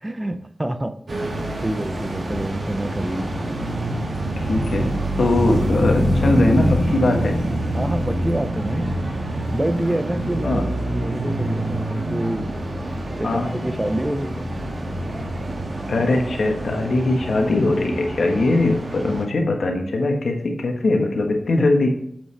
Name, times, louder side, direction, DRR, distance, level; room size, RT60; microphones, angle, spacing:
voice 1, 0.0-3.4 7.7-12.6 13.2-14.4 21.6-21.7, right 1 dB, 20° right, 9 dB, 0.5 m, -27 dB
sound 1, 1.1-19.3, right 1 dB, 60° right, 1.6 m, -26 dB
voice 2, 4.2-7.4 10.4-10.6 13.2-13.5 15.9-21.9, left 2 dB, 80° left, 3 dB, 1.2 m, -21 dB
7.2 x 5.5 x 3.3 m, 0.73 s
wide cardioid pair, 90°, 0 cm